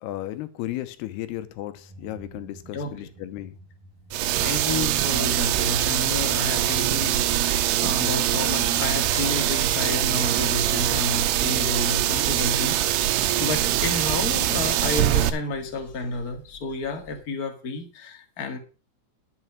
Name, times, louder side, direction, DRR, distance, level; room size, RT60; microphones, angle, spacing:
voice 1, 0.0-3.6, left 14 dB, 85° left, 2.9 m, -34 dB
sound 1, 1.7-8.3, right 2 dB, 65° right, 2.9 m, -51 dB
sound 2, 4.1-15.3, right 13 dB, 90° right, 2.9 m, -23 dB
voice 2, 4.4-18.6, left 3 dB, 55° left, 1.0 m, -31 dB
sound 3, 11.3-17.2, left 5 dB, 35° left, 2.1 m, -47 dB
11.0 x 6.9 x 6.0 m
omnidirectional pair, 4.6 m